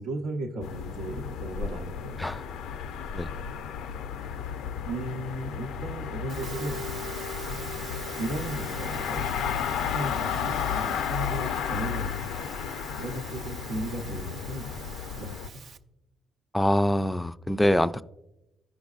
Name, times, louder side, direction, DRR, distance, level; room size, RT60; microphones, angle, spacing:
voice 1, 0.0-2.2 4.8-6.8 7.5-7.8 8.2-9.3 9.6-12.5 13.0-14.8 15.1-15.6, right 1 dB, 90° right, -1 dB, 0.8 m, -36 dB
sound 1, 0.6-15.5, left 8 dB, 90° left, 0.4 m, -33 dB
Musical instrument, 6.3-15.8, right 3 dB, 65° right, 0.5 m, -42 dB
voice 2, 16.5-18.0, left 1 dB, 10° left, 13 dB, 0.3 m, -24 dB
15.0 x 5.1 x 2.4 m, 0.91 s
cardioid pair, 90°, 0 cm